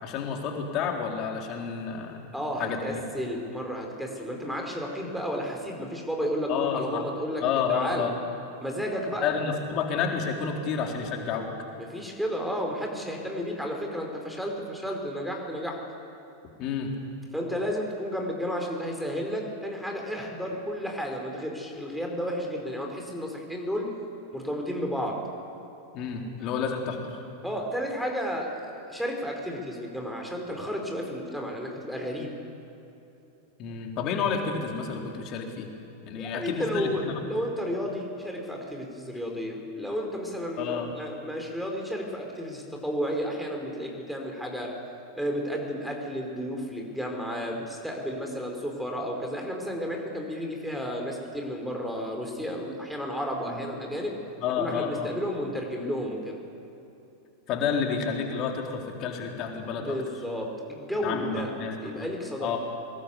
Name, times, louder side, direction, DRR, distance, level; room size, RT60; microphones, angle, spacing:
voice 1, 0.0-2.2 2.6-3.0 6.5-7.0 7.4-8.2 9.2-11.5 16.6-16.9 25.9-27.2 33.6-35.7 36.0-37.1 40.6-40.9 53.5-53.6 54.4-55.1 57.5-60.0 61.0-62.1 62.4-62.6, left 6 dB, 40° left, 2 dB, 4.0 m, -30 dB
voice 2, 2.3-7.4 7.7-8.0 8.6-9.3 11.8-15.8 17.3-23.9 24.3-25.2 27.4-32.3 36.1-44.7 45.1-54.2 54.6-56.4 59.8-61.5 61.8-62.6, equal, ahead, 1 dB, 4.6 m, -32 dB
25.0 x 21.0 x 8.5 m, 2.9 s
figure-of-eight pair, 90°, 0 cm